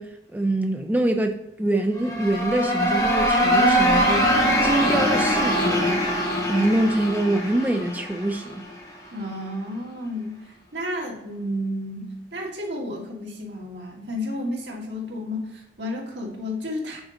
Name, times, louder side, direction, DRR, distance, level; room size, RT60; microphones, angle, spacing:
voice 1, 0.0-6.2 6.5-8.6, right 1 dB, 10° right, 0.3 m, -25 dB
sound 1, 2.0-8.7, equal, 20° left, 1.0 m, -22 dB
voice 2, 9.1-17.0, left 1 dB, 85° right, 1.7 m, -32 dB
6.0 x 3.8 x 4.9 m
head